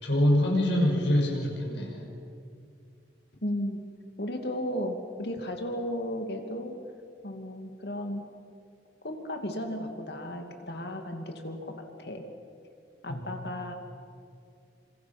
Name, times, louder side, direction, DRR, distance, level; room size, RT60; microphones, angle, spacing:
voice 1, 0.0-2.0 13.1-13.2, left 1 dB, 85° left, 0 dB, 6.0 m, -25 dB
voice 2, 3.4-3.8 4.2-6.8 7.2-8.3 9.0-12.2 13.0-13.7, left 1 dB, 65° left, 4 dB, 2.6 m, -34 dB
28.5 x 26.0 x 6.1 m, 2.4 s
head